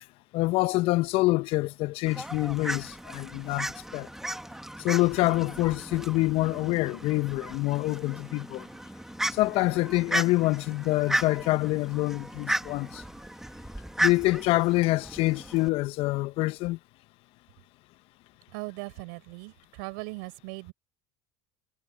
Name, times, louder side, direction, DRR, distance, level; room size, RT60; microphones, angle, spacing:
voice 1, 0.3-4.1 4.8-8.7 9.3-13.0 14.0-16.8, left 20 dB, 60° left, 1.2 m, -26 dB
Fowl, 2.1-15.7, right 1 dB, 5° right, 2.0 m, -35 dB
voice 2, 18.5-20.7, right 31 dB, 70° right, 4.8 m, -39 dB
hypercardioid pair, 75°, 11 cm